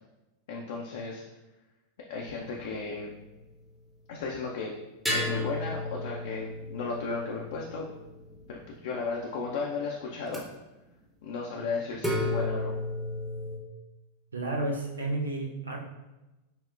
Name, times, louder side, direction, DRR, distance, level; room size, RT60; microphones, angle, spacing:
voice 1, 0.5-1.2 2.1-3.1 4.1-4.7 5.1-7.9 8.5-10.4 11.2-12.8, left 4 dB, 55° left, -2 dB, 0.4 m, -34 dB
sound 1, 2.2-3.4 5.0-8.8 10.3-10.4 12.0-13.6, left 1 dB, 10° right, 0.7 m, -34 dB
voice 2, 14.3-15.8, right 2 dB, 75° right, 0 dB, 0.6 m, -31 dB
5.8 x 2.1 x 2.4 m, 1.0 s
figure-of-eight pair, 90°, 0 cm